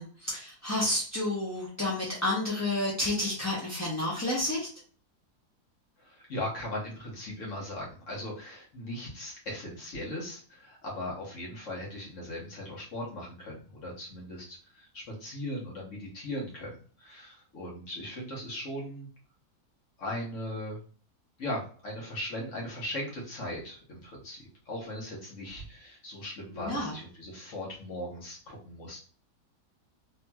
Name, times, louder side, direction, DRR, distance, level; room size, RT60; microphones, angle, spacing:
voice 1, 0.0-4.7 26.5-26.9, left 1 dB, 25° left, -6 dB, 0.3 m, -30 dB
voice 2, 6.0-19.1 20.0-20.8 21.4-29.0, left 1 dB, 55° left, -3 dB, 1.2 m, -38 dB
3.1 x 2.8 x 2.2 m, 0.42 s
omnidirectional pair, 1.7 m